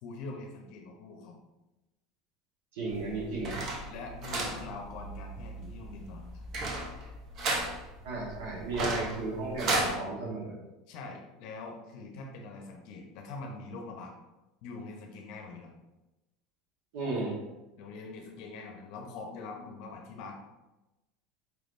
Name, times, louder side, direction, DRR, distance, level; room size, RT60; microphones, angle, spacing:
voice 1, 0.0-1.4 3.9-6.4 10.9-14.1 14.6-15.7 17.8-20.4, left 3 dB, 60° left, 2 dB, 0.6 m, -43 dB
voice 2, 2.7-3.5 8.0-10.6 16.9-17.4, right 2 dB, 80° right, -3 dB, 1.2 m, -34 dB
sound 1, 2.9-9.9, right 2 dB, 40° right, 0.7 m, -35 dB
4.6 x 3.4 x 2.5 m, 1.0 s
supercardioid pair, 145°, 0 cm